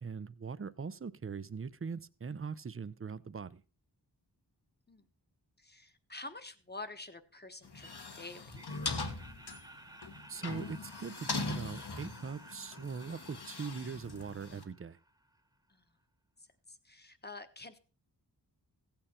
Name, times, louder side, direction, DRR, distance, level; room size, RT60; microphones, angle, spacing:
voice 1, 0.0-3.6 10.3-15.0, right 5 dB, 30° right, 0.6 m, -41 dB
voice 2, 5.6-8.6 15.7-15.8 16.7-17.8, left 2 dB, 25° left, 1.1 m, -48 dB
sound 1, 7.6-14.6, left 3 dB, 65° left, 1.5 m, -41 dB
Laughter, 8.5-15.5, right 1 dB, 10° right, 1.2 m, -56 dB
15.5 x 8.9 x 4.3 m
wide cardioid pair, 90°, 42 cm